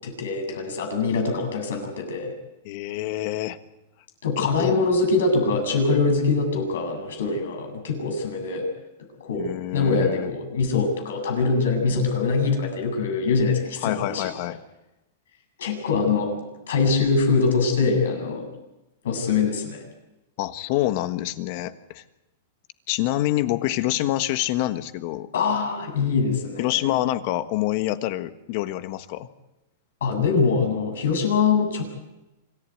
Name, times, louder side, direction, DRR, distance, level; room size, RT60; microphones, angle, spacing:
voice 1, 0.0-2.3 4.2-8.7 9.2-9.5 9.7-14.3 15.6-16.4 16.7-18.5 19.0-19.8 25.3-26.9 30.0-31.8, left 4 dB, 85° left, 4 dB, 7.8 m, -23 dB
voice 2, 2.6-3.6 4.4-4.8 9.3-10.3 13.8-14.6 20.4-22.0 22.9-25.3 26.6-29.3, left 15 dB, 45° left, 12 dB, 1.5 m, -26 dB
26.0 x 15.0 x 9.4 m, 0.97 s
supercardioid pair, 150°, 0 cm